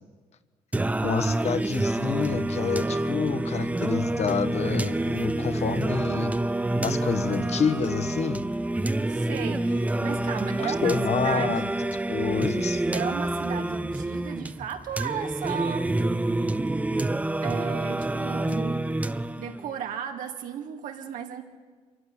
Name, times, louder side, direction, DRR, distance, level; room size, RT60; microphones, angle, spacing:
Singing, 0.7-19.7, right 2 dB, 10° right, 0.6 m, -27 dB
voice 1, 1.0-6.4 6.8-8.4 10.6-11.7 12.1-12.8, left 6 dB, 55° left, 10 dB, 1.4 m, -28 dB
voice 2, 9.1-11.7 12.9-15.9 17.4-18.9 19.4-21.4, right 8 dB, 85° right, 4 dB, 2.4 m, -35 dB
25.5 x 14.5 x 9.7 m, 1.5 s
cardioid pair, 105°, 13 cm